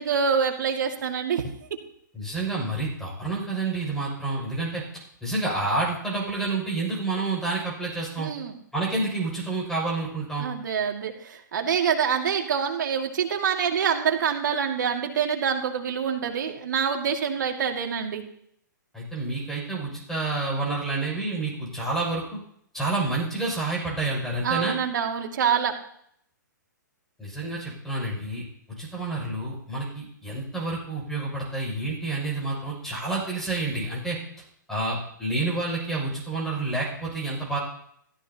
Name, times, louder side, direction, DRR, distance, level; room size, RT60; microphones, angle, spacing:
voice 1, 0.0-1.4 8.2-8.5 10.4-18.2 24.4-25.7, right 7 dB, 70° right, 3 dB, 2.3 m, -26 dB
voice 2, 2.1-4.8 5.2-8.3 8.7-10.5 18.9-22.4 22.7-24.7 27.2-28.4 28.8-34.2 34.7-37.6, right 2 dB, 5° left, -4 dB, 6.3 m, -29 dB
16.0 x 13.5 x 2.9 m, 0.68 s
hypercardioid pair, 135°, 10 cm